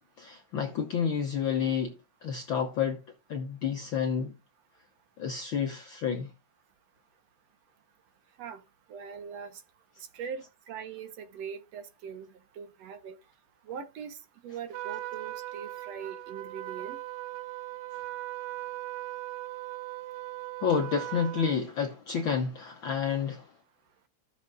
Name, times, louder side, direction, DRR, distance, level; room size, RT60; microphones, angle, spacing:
voice 1, 0.2-3.0 3.3-4.3 5.2-6.3 20.6-23.5, left 7 dB, 65° left, 1.2 m, -30 dB
voice 2, 8.9-9.6 10.1-12.3 12.6-13.2 13.7-14.2 14.4-17.0, right 7 dB, 65° right, 2.1 m, -41 dB
Trumpet, 14.7-21.6, right 17 dB, 85° right, 2.2 m, -39 dB
15.5 x 6.5 x 2.5 m
omnidirectional pair, 3.4 m